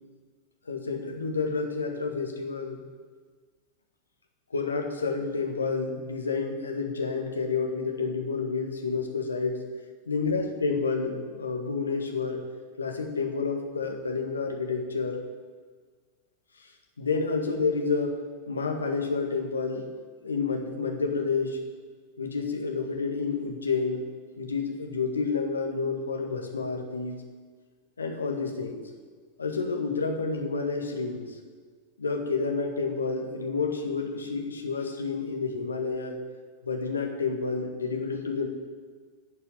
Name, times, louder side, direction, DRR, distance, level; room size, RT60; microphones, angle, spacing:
voice 1, 0.7-2.8 4.5-9.6 10.1-12.4 12.8-15.2 16.6-16.7 17.0-18.2 18.5-19.9 20.2-21.6 22.2-24.0 24.4-27.2 28.0-28.8 29.4-31.4 32.0-36.2 36.6-38.5, left 4 dB, 75° left, 3 dB, 1.7 m, -29 dB
12.0 x 6.8 x 9.3 m, 1.5 s
figure-of-eight pair, 90°, 0 cm